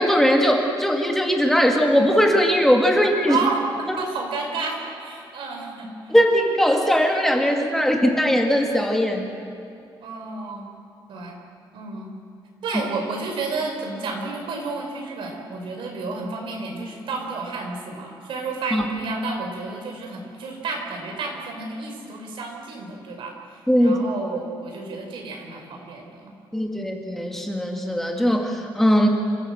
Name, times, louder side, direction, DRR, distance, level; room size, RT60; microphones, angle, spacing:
voice 1, 0.0-3.4 3.9-4.0 6.1-9.3 18.7-18.9 23.7-24.0 26.5-29.1, equal, 5° left, 1 dB, 2.0 m, -19 dB
voice 2, 3.3-6.1 10.0-10.7 11.1-11.4 11.7-12.1 12.6-26.3 26.6-26.8, right 3 dB, 75° right, 2 dB, 5.0 m, -31 dB
27.5 x 16.0 x 7.9 m, 2.7 s
wide cardioid pair, 170°, 9 cm